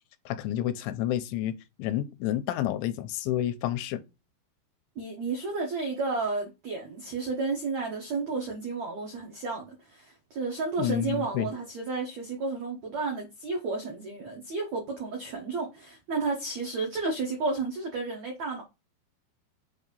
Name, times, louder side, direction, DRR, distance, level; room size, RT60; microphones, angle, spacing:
voice 1, 0.3-4.0 10.8-11.5, left 12 dB, 85° left, 2.9 m, -30 dB
voice 2, 4.9-18.6, right 3 dB, 75° right, 1.6 m, -32 dB
7.8 x 2.8 x 5.2 m
omnidirectional pair, 5.3 m